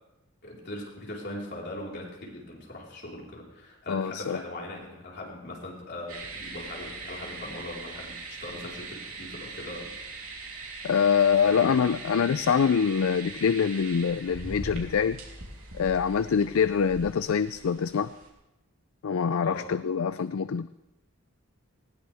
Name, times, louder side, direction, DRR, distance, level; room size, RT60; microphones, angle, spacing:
voice 1, 0.4-9.9 11.4-11.8 19.4-19.7, left 1 dB, 50° left, -3 dB, 4.3 m, -40 dB
voice 2, 3.9-4.4 10.8-15.2 15.7-18.1 19.0-20.7, left 6 dB, 75° left, 13 dB, 0.4 m, -25 dB
sound 1, 6.1-18.3, right 3 dB, 75° right, 3.2 m, -41 dB
19.5 x 17.5 x 3.5 m, 0.95 s
head